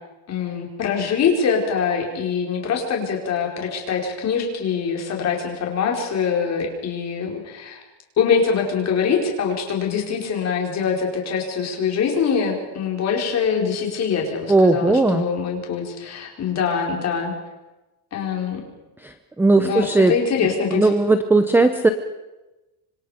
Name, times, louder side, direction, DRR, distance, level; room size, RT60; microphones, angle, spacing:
voice 1, 0.3-7.8 8.2-17.3 18.1-18.6 19.6-20.9, left 6 dB, 35° left, 0 dB, 5.1 m, -23 dB
voice 2, 14.5-15.3 19.0-20.1 20.7-21.9, right 2 dB, 5° right, 8 dB, 0.7 m, -17 dB
26.0 x 25.5 x 5.2 m, 1.0 s
cardioid pair, 165°, 46 cm